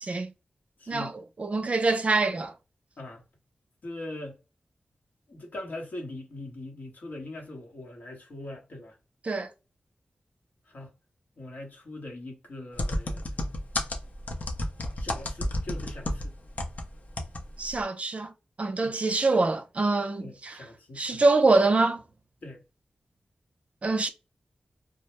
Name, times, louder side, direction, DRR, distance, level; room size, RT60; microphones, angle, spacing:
voice 1, 0.0-0.3 0.9-1.1 1.4-2.5 9.2-9.5 17.6-18.3 18.6-20.6 21.0-22.0 23.8-24.1, right 3 dB, 45° right, 0.4 m, -24 dB
voice 2, 0.8-1.2 3.0-3.2 3.8-4.4 5.3-9.0 10.7-10.9 11.4-13.2 14.9-16.4 18.8-19.0 20.2-21.2 22.4-22.6, left 1 dB, 75° left, 1.1 m, -41 dB
sound 1, 12.8-16.8 17.2-17.4 17.7-17.8, left 1 dB, 60° left, 0.6 m, -31 dB
2.2 x 2.1 x 2.9 m
wide cardioid pair, 65°, 3 cm